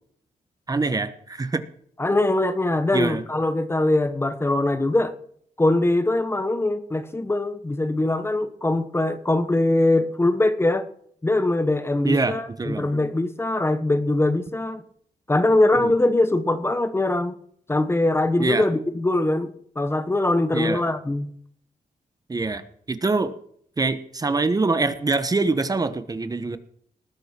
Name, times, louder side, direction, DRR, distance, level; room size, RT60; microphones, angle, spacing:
voice 1, 0.7-1.6 2.9-3.2 12.0-12.9 15.7-15.9 18.4-18.6 20.5-20.8 22.3-22.6 22.9-23.3 23.8-26.6, right 3 dB, 25° right, 11 dB, 1.1 m, -24 dB
voice 2, 2.0-5.1 5.6-10.9 11.2-14.8 15.3-17.4 17.7-21.3, left 2 dB, 15° left, 11 dB, 1.1 m, -22 dB
19.5 x 8.7 x 6.1 m, 0.64 s
wide cardioid pair, 125°, 15 cm